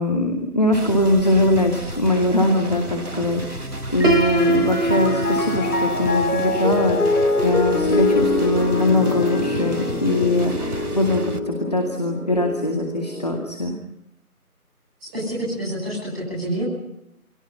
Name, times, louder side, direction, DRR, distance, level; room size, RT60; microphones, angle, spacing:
voice 1, 0.0-13.8, left 1 dB, 25° left, 3 dB, 2.4 m, -22 dB
sound 1, 0.7-11.4, right 1 dB, 75° right, 2.4 m, -33 dB
Piano, 3.9-13.5, left 2 dB, 80° left, 5.2 m, -25 dB
Piano 2, 4.0-9.9, right 1 dB, 55° right, 2.2 m, -26 dB
voice 2, 15.0-16.6, right 1 dB, 5° right, -16 dB, 6.3 m, -28 dB
29.5 x 23.5 x 5.7 m, 0.79 s
figure-of-eight pair, 170°, 45 cm